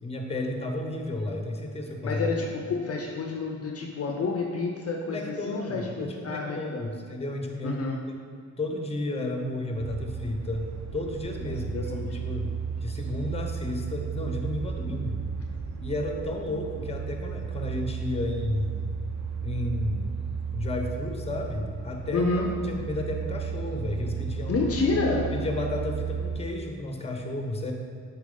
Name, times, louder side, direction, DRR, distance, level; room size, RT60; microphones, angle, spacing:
voice 1, 0.0-2.3 5.1-7.8 8.6-10.7 10.9-12.5 12.8-15.2 15.8-18.8 19.4-20.2 20.5-22.3 22.6-24.6 25.3-27.7, left 1 dB, 20° left, 2 dB, 0.9 m, -32 dB
voice 2, 2.0-6.9 7.6-8.0 11.5-12.2 22.1-22.5 24.5-25.3, left 3 dB, 50° left, 2 dB, 0.6 m, -29 dB
sound 1, 9.8-26.4, right 7 dB, 60° right, 0.7 m, -34 dB
7.1 x 4.5 x 3.9 m, 2.2 s
cardioid pair, 80°, 31 cm